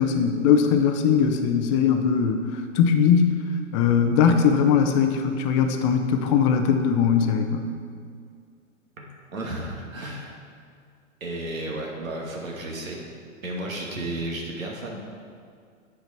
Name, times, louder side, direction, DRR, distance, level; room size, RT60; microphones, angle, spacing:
voice 1, 0.0-2.4 2.7-3.3 3.7-7.6, left 7 dB, 25° left, 6 dB, 0.5 m, -20 dB
voice 2, 9.3-10.4 11.2-13.1 13.4-15.0, right 1 dB, 90° right, -1 dB, 1.4 m, -33 dB
8.0 x 4.8 x 4.5 m, 2.2 s
hypercardioid pair, 120°, 40 cm